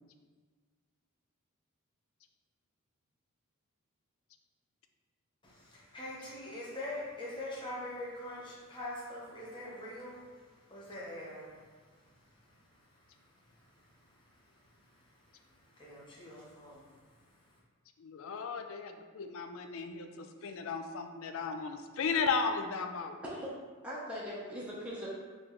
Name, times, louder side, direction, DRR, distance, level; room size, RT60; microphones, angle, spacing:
voice 1, 5.4-10.2 10.7-11.5 12.5-12.6 13.8-14.1 14.7-15.1 15.7-17.0, left 1 dB, 20° left, -6 dB, 0.9 m, -43 dB
voice 2, 18.0-23.1, left 5 dB, 65° left, 7 dB, 0.4 m, -35 dB
voice 3, 23.2-23.6 23.8-25.1, equal, 5° right, -8 dB, 0.6 m, -40 dB
4.2 x 3.1 x 3.0 m, 1.5 s
head